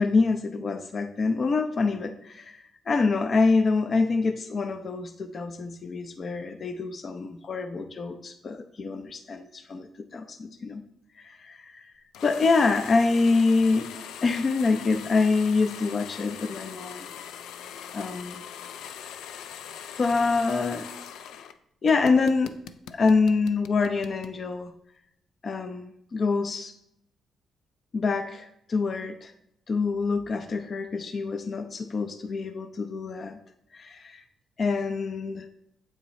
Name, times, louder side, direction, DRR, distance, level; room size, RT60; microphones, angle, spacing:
voice 1, 0.0-10.8 11.2-11.9 12.2-13.9 14.2-17.1 17.9-18.4 20.0-21.2 21.8-22.6 22.9-24.7 25.4-26.7 27.9-29.3 29.7-33.4 33.7-34.2 34.6-35.5, left 4 dB, 45° left, 8 dB, 0.6 m, -26 dB
sound 1, 12.1-21.5 21.9-24.4, left 8 dB, 85° left, 0.5 m, -41 dB
7.9 x 5.9 x 4.2 m, 0.76 s
cardioid pair, 90°, 0 cm